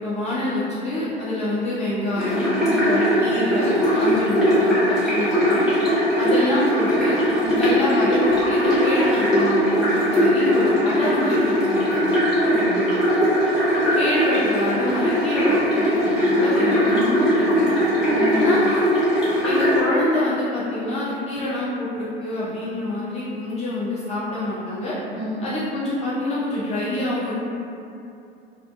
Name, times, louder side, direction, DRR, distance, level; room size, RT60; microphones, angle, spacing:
voice 1, 0.0-2.6 2.8-5.7 6.2-7.2 7.6-12.0 14.0-17.8 18.3-18.6 19.4-24.9 25.4-27.3, left 1 dB, 20° left, -9 dB, 0.3 m, -26 dB
sound 1, 2.2-19.8, equal, ahead, 1.0 m, -20 dB
voice 2, 12.4-12.8 16.8-17.1 18.1-18.5 25.2-25.4, right 1 dB, 40° right, -8 dB, 0.9 m, -30 dB
2.5 x 2.1 x 2.4 m, 2.6 s
figure-of-eight pair, 80°, 32 cm